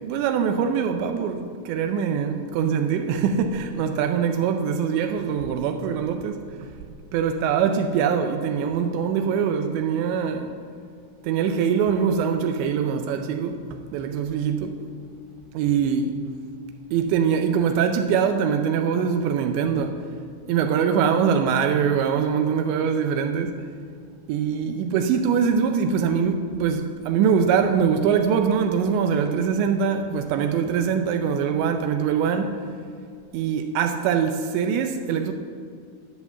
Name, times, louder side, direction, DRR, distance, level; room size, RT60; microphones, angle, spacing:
voice 1, 0.0-6.7 7.1-10.5 11.2-14.8 15.5-16.2 16.9-20.1 20.5-23.7 24.3-32.6 33.3-35.3, right 7 dB, 85° right, 2.5 m, -23 dB
13.0 x 8.3 x 6.9 m
omnidirectional pair, 6.0 m